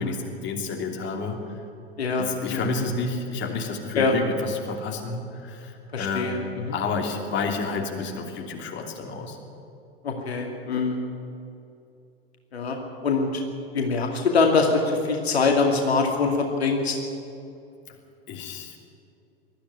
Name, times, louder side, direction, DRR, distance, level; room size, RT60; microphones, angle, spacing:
voice 1, 0.0-1.6 2.2-9.4 18.3-18.8, left 4 dB, 35° left, 2 dB, 3.1 m, -30 dB
voice 2, 2.0-2.7 3.9-4.1 5.9-6.8 10.0-11.0 12.5-13.4 13.7-16.9, left 4 dB, 80° left, 2 dB, 2.3 m, -24 dB
20.0 x 13.5 x 9.7 m, 2.6 s
figure-of-eight pair, 85°, 31 cm